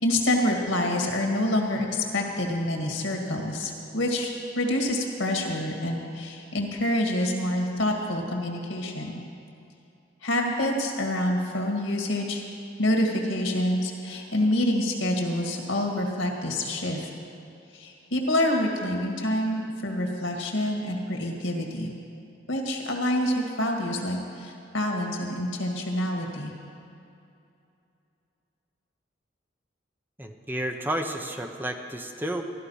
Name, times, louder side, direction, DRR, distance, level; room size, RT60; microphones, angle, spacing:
voice 1, 0.0-9.2 10.2-12.4 12.8-17.1 17.7-21.9 22.5-26.5, left 1 dB, 85° left, 1 dB, 2.1 m, -27 dB
voice 2, 30.2-32.4, right 1 dB, 10° right, 4 dB, 0.7 m, -31 dB
14.5 x 12.0 x 5.7 m, 2.6 s
head